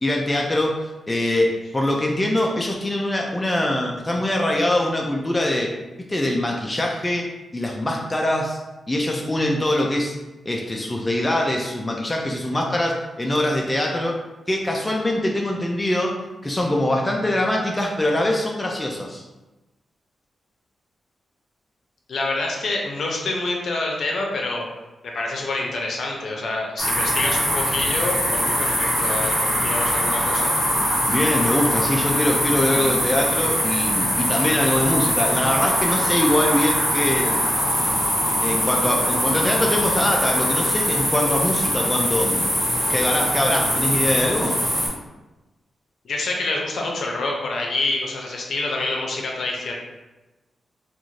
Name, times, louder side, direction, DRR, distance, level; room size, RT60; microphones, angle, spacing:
voice 1, 0.0-8.6 8.9-10.1 10.5-14.2 14.5-19.2 31.1-37.4 37.7-38.0 38.4-42.5 42.9-44.6, left 1 dB, 15° left, 0 dB, 0.3 m, -23 dB
voice 2, 22.1-24.6 25.0-30.5 46.0-49.7, left 2 dB, 60° left, 0 dB, 0.6 m, -27 dB
sound 1, 26.8-44.9, equal, 5° right, 1.0 m, -22 dB
2.5 x 2.4 x 3.0 m, 1.1 s
wide cardioid pair, 115°, 0 cm